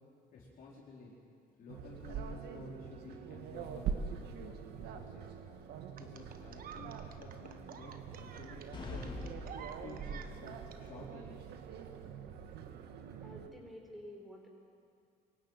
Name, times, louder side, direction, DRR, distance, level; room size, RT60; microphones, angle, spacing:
voice 1, 0.3-1.1 1.6-5.3 5.9-9.3 9.8-11.5, left 3 dB, 55° left, -5 dB, 4.4 m, -52 dB
sound 1, 1.7-13.5, right 7 dB, 75° right, 1.8 m, -44 dB
sound 2, 6.0-10.8 12.0-12.1, right 7 dB, 60° right, 1.5 m, -50 dB
sound 3, 8.7-10.4, left 3 dB, 30° left, 3.8 m, -44 dB
voice 2, 13.2-14.5, equal, ahead, -1 dB, 5.0 m, -50 dB
24.0 x 15.5 x 9.1 m, 2.3 s
cardioid pair, 110°, 17 cm